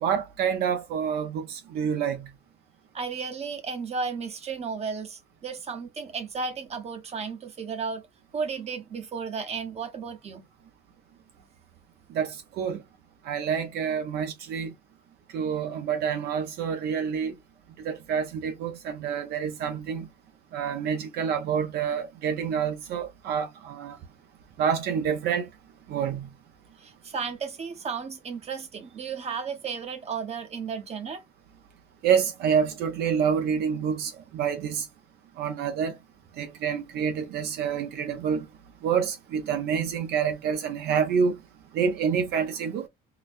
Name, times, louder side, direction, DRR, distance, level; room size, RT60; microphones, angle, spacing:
voice 1, 0.0-2.3 12.1-12.8 13.2-14.7 15.3-17.3 17.8-20.1 20.5-24.0 24.6-25.5 25.9-26.3 32.0-34.9 35.4-36.0 36.4-38.4 38.8-41.4 41.7-42.9, right 7 dB, 70° right, 0.7 m, -27 dB
voice 2, 2.9-8.0 8.3-10.4 26.8-31.2, right 5 dB, 40° right, 0.8 m, -34 dB
4.0 x 2.1 x 2.6 m
cardioid pair, 110°, 17 cm